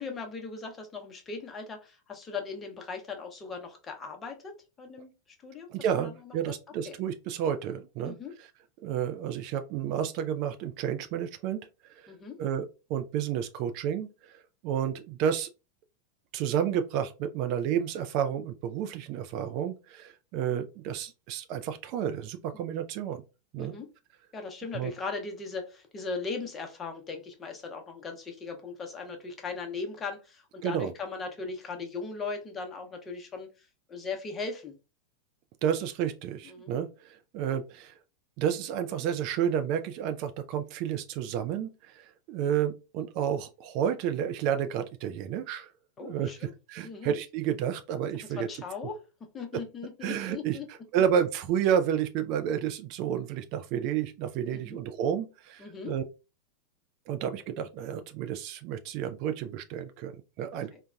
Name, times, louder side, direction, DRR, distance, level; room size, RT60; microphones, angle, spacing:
voice 1, 0.0-5.1 5.4-5.7 6.0-6.3 6.9-7.0 8.0-8.3 12.1-12.4 22.5-22.6 23.6-23.9 24.3-33.5 33.9-34.7 36.4-36.7 46.0-46.5 46.8-47.1 48.4-49.0 49.3-50.7 54.5-54.8 55.6-55.9 60.5-60.8, left 4 dB, 25° left, 0.7 m, -38 dB
voice 2, 5.7-8.2 8.8-11.7 12.0-12.1 12.4-14.1 14.6-15.5 16.3-23.2 23.5-23.7 24.7-24.9 30.6-30.9 35.6-37.9 38.4-45.7 46.0-48.5 49.5-49.6 50.0-50.6 50.9-56.0 57.1-60.7, right 9 dB, 45° right, 0.3 m, -31 dB
3.8 x 2.2 x 2.3 m
figure-of-eight pair, 90°, 0 cm